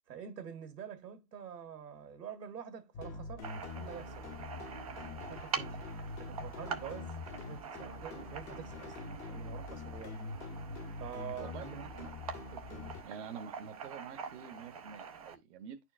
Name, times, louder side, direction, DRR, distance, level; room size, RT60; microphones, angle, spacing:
voice 1, 0.1-4.3 5.3-5.8 6.2-10.2 11.0-12.0, right 8 dB, 80° right, 1.7 m, -46 dB
sound 1, 2.9-13.0, left 4 dB, 25° left, 0.7 m, -45 dB
sound 2, 3.4-15.3, right 6 dB, 25° right, 0.4 m, -45 dB
voice 2, 12.5-15.8, right 7 dB, 45° right, 0.9 m, -47 dB
9.7 x 4.4 x 2.5 m
hypercardioid pair, 130°, 48 cm